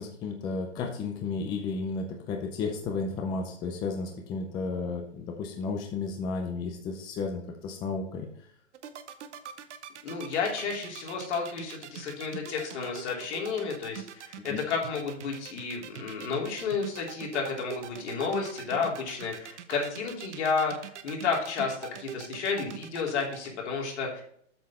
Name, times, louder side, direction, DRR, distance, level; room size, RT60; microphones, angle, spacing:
voice 1, 0.0-8.3 14.5-14.6, left 4 dB, 10° left, 3 dB, 0.5 m, -33 dB
sound 1, 8.7-23.5, right 10 dB, 70° right, 0.9 m, -42 dB
voice 2, 10.0-24.2, left 5 dB, 65° left, -1 dB, 3.2 m, -31 dB
8.0 x 5.5 x 4.2 m, 0.64 s
hypercardioid pair, 140°, 36 cm